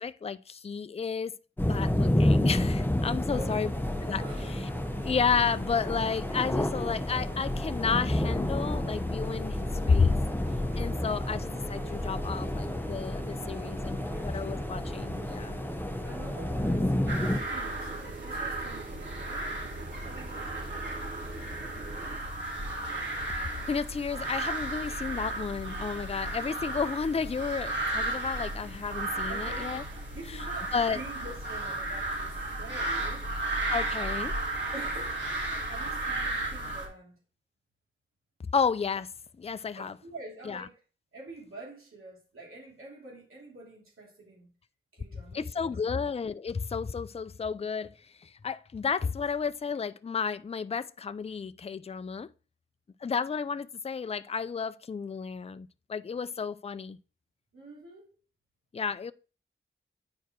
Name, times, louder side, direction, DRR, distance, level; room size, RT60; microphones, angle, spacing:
voice 1, 0.0-3.7 4.0-4.2 5.0-10.2 10.8-15.6 23.6-29.8 30.7-31.0 33.7-34.4 38.5-39.1 39.4-39.9 40.5-40.6 45.3-52.3 53.0-57.0 58.7-59.1, left 5 dB, 30° left, 0.4 m, -32 dB
sound 1, 1.6-17.4, left 1 dB, 10° left, 0.8 m, -30 dB
sound 2, 3.2-22.2, right 4 dB, 40° right, 0.7 m, -46 dB
voice 2, 3.3-3.7 4.2-4.9 13.4-14.6 16.0-19.4 20.0-21.1 29.3-33.3 34.7-35.2 35.7-37.2 39.7-40.8 41.1-44.5 44.9-46.1 57.5-58.2, right 2 dB, 80° right, 3.1 m, -47 dB
sound 3, 17.1-36.9, right 2 dB, 60° right, 3.1 m, -34 dB
9.4 x 4.7 x 4.5 m
wide cardioid pair, 85°, 21 cm